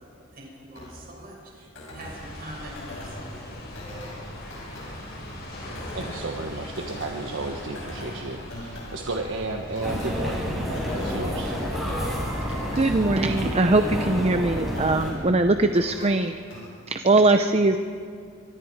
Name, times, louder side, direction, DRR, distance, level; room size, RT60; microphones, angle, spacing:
voice 1, 0.0-3.3, right 1 dB, 50° right, -2 dB, 6.3 m, -44 dB
sound 1, 0.8-16.8, left 1 dB, 70° left, 5.7 m, -43 dB
sound 2, 2.0-12.2, left 1 dB, 55° left, 5.7 m, -40 dB
voice 2, 5.9-11.6, right 2 dB, 70° right, 2 dB, 1.4 m, -33 dB
sound 3, 9.8-15.1, equal, ahead, 5.9 m, -29 dB
voice 3, 12.7-16.6 16.9-17.8, right 2 dB, 30° right, 7 dB, 0.7 m, -21 dB
24.5 x 23.0 x 4.8 m, 2.1 s
head